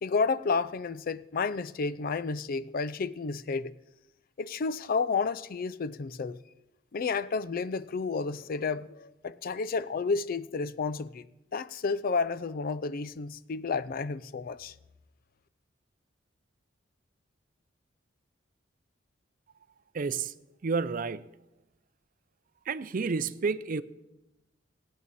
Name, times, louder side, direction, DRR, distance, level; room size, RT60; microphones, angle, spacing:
voice 1, 0.0-3.7 4.4-6.4 6.9-11.2 11.5-14.7, left 4 dB, 50° left, 0.4 m, -31 dB
voice 2, 19.9-20.3 20.6-21.2 22.7-23.8, right 4 dB, 45° right, 0.5 m, -30 dB
22.0 x 8.9 x 4.2 m
head